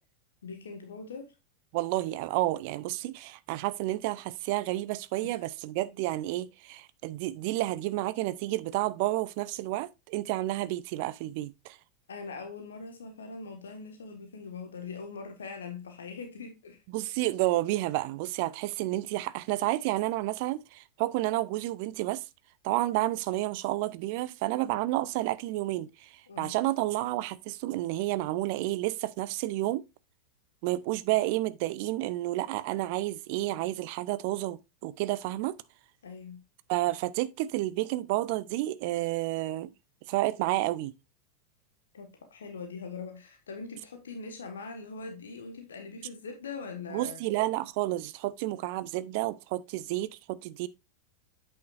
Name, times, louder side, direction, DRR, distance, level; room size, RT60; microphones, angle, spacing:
voice 1, 0.4-1.3 12.1-16.8 26.3-26.5 36.0-36.4 41.9-47.2, left 4 dB, 65° left, 1.4 m, -42 dB
voice 2, 1.7-11.8 16.9-22.2 22.6-29.8 30.6-35.6 36.7-39.7 40.1-40.9 46.9-50.7, right 17 dB, 45° right, 0.5 m, -30 dB
8.4 x 6.4 x 2.5 m
figure-of-eight pair, 90°, 0 cm